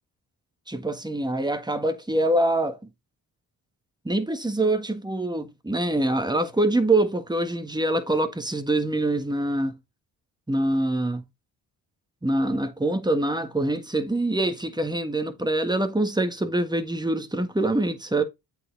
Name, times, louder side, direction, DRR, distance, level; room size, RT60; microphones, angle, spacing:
voice 1, 0.7-2.8 4.1-9.8 10.5-11.2 12.2-18.2, right 1 dB, 10° right, 1.6 m, -25 dB
8.1 x 4.8 x 3.9 m
supercardioid pair, 55°, 45 cm